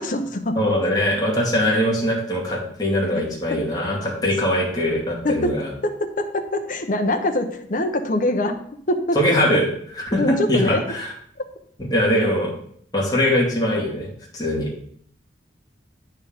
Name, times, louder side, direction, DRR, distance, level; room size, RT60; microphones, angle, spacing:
voice 1, 0.0-0.6 3.5-3.6 5.2-5.6 5.8-8.6 8.9-9.2 9.5-9.6 10.2-10.9, left 1 dB, 50° left, 5 dB, 0.8 m, -23 dB
voice 2, 0.6-5.7 9.1-9.7 9.9-11.1 11.8-12.5 12.9-14.7, left 1 dB, 20° left, -3 dB, 2.4 m, -21 dB
9.3 x 4.5 x 5.2 m, 0.63 s
head